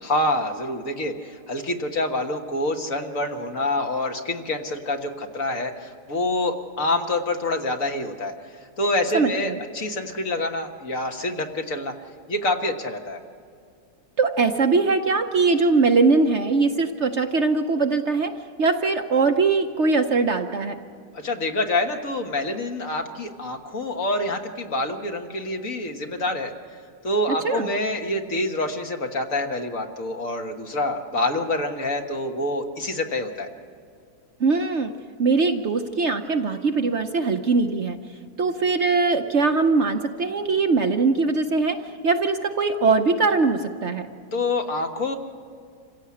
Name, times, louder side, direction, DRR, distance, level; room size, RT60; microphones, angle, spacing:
voice 1, 0.0-8.3 8.8-11.9 12.3-13.2 21.1-26.5 27.0-33.5 44.3-45.2, left 2 dB, 55° left, 4 dB, 1.8 m, -26 dB
voice 2, 9.1-9.6 14.2-18.3 18.6-20.8 27.3-27.7 34.4-34.9 35.2-38.0 38.4-44.1, right 4 dB, 50° right, 5 dB, 1.0 m, -21 dB
27.0 x 16.5 x 8.5 m, 2.3 s
omnidirectional pair, 1.8 m